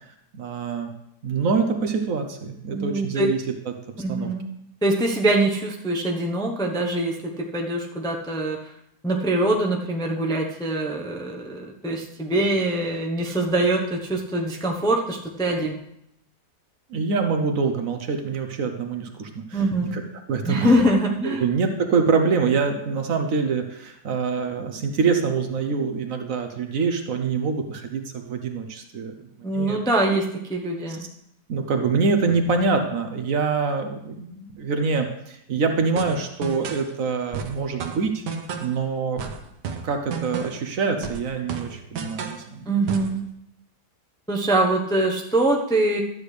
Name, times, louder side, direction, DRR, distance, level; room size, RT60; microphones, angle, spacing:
voice 1, 0.3-0.9 1.2-3.4 4.1-4.3 16.9-19.6 19.9-20.0 20.3-20.8 21.4-29.1 29.5-30.1 31.5-38.2 38.6-39.3 39.8-42.7, right 5 dB, 60° right, 5 dB, 1.1 m, -25 dB
voice 2, 2.7-3.3 4.0-4.5 4.8-7.1 7.5-8.6 9.0-15.8 19.5-20.0 20.4-21.4 29.4-30.2 30.5-31.1 42.7-43.2 44.3-46.0, right 1 dB, 5° left, 0 dB, 0.6 m, -23 dB
sound 1, 36.0-36.9 37.3-38.8 39.2-40.7 41.0-42.5 42.9-43.2, right 5 dB, 85° right, 1.5 m, -32 dB
12.5 x 8.1 x 3.3 m, 0.78 s
omnidirectional pair, 1.8 m